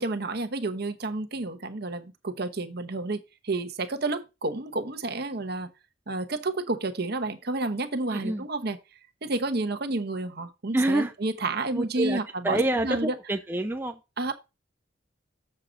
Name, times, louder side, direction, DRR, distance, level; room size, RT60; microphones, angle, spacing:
voice 1, 0.0-5.7 6.1-8.8 9.2-13.1 14.2-14.3, right 2 dB, 50° right, 1.0 m, -30 dB
voice 2, 8.1-8.4 10.7-11.1 11.7-14.0, right 1 dB, 10° right, 0.5 m, -27 dB
7.4 x 6.6 x 3.9 m
head